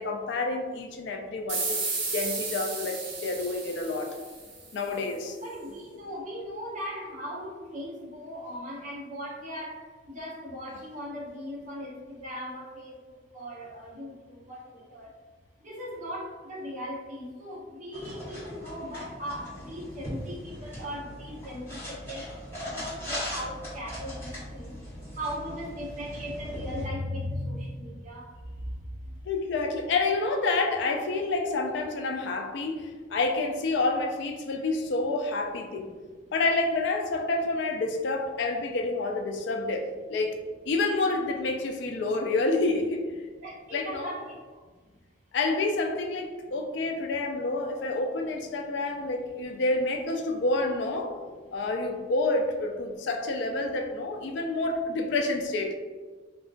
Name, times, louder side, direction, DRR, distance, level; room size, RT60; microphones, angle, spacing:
voice 1, 0.0-1.8 2.1-4.2 4.7-5.4 29.3-35.9 36.3-40.4 40.7-43.0 43.7-44.1 45.3-51.2 51.5-55.7, left 3 dB, 60° left, 3 dB, 0.3 m, -28 dB
sound 1, 1.5-4.8, right 4 dB, 70° right, 0.8 m, -33 dB
voice 2, 5.4-15.1 15.6-22.2 22.7-24.7 25.2-28.3 43.4-44.4, equal, 40° right, -4 dB, 0.7 m, -38 dB
sound 2, 17.9-26.8, left 1 dB, 15° left, 1.0 m, -40 dB
3.7 x 2.3 x 2.4 m, 1.4 s
head